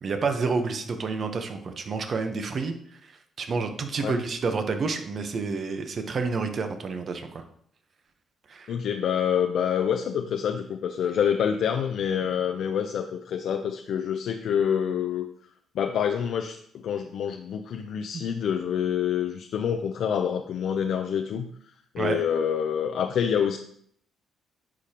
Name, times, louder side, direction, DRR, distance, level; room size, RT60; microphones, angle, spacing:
voice 1, 0.0-7.4 8.5-8.7 22.0-22.2, right 4 dB, 50° right, 6 dB, 0.9 m, -29 dB
voice 2, 8.7-15.3 15.7-21.5 21.9-23.6, left 8 dB, 70° left, 5 dB, 0.5 m, -27 dB
10.0 x 5.0 x 2.9 m, 0.65 s
cardioid pair, 90°, 0 cm